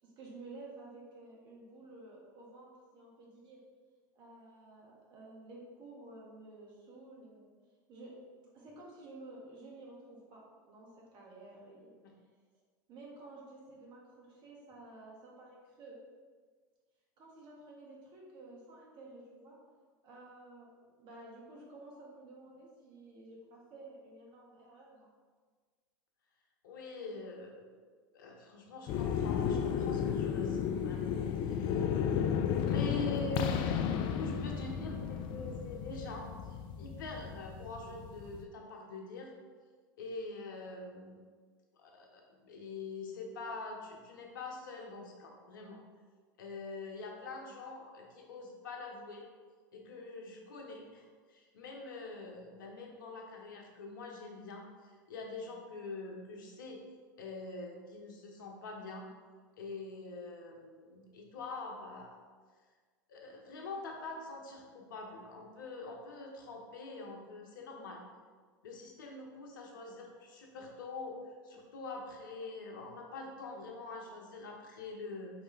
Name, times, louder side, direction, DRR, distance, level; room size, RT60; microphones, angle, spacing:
voice 1, 0.0-3.6 4.1-7.5 7.9-8.1 8.5-11.9 12.9-16.0 17.2-19.6 20.0-20.7 21.0-25.1, right 2 dB, 45° right, -3 dB, 1.4 m, -52 dB
voice 2, 26.6-27.7 28.1-31.1 31.4-31.8 32.6-33.6 34.2-39.3 40.0-41.2 41.7-45.8 46.4-49.3 49.7-56.8 57.2-59.1 59.6-62.2 63.1-68.0 68.6-71.2 71.4-75.4, left 3 dB, 75° left, 1 dB, 0.9 m, -44 dB
sound 1, 28.9-38.4, left 8 dB, 50° left, 0.4 m, -33 dB
4.8 x 3.3 x 3.2 m, 1.5 s
hypercardioid pair, 90°, 11 cm